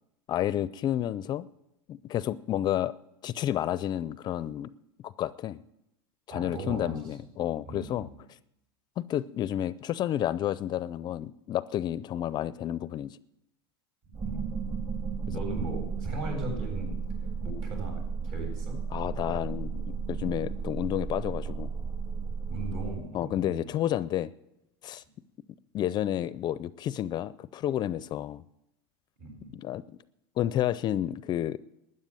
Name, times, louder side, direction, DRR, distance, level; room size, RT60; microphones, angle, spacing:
voice 1, 0.3-1.5 1.9-2.9 3.2-4.7 5.0-5.6 6.3-8.1 9.0-13.2 18.9-19.8 20.1-21.7 23.1-24.3 24.8-25.0 25.7-28.4 29.5-29.8 30.4-31.6, left 11 dB, 35° left, 0.4 m, -30 dB
voice 2, 6.3-7.0 7.6-8.1 14.2-14.7 15.3-16.9 17.4-18.8 22.5-23.7 29.2-29.5, right 2 dB, 60° right, 7.9 m, -38 dB
sound 1, 14.1-23.0, right 5 dB, 35° right, 2.6 m, -34 dB
13.0 x 9.7 x 9.0 m
supercardioid pair, 120°, 13 cm